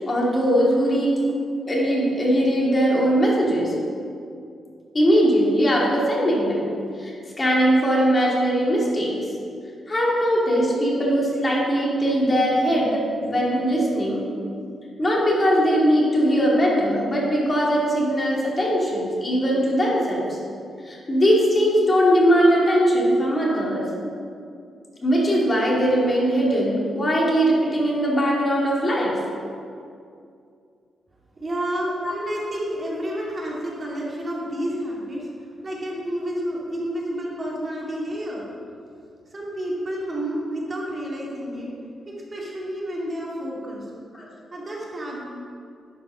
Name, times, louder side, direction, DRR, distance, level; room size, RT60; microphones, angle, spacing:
voice 1, 0.1-1.1 1.7-3.7 4.9-6.7 7.0-9.1 9.9-14.3 15.0-20.4 20.8-23.9 25.0-29.1 32.0-32.1 44.1-44.3, equal, 30° left, -4 dB, 2.5 m, -20 dB
voice 2, 31.4-35.3 35.6-38.5 39.3-41.7 42.1-43.9 44.5-45.2, equal, 35° right, -4 dB, 2.4 m, -30 dB
11.5 x 5.8 x 5.5 m, 2.4 s
cardioid pair, 100°, 0 cm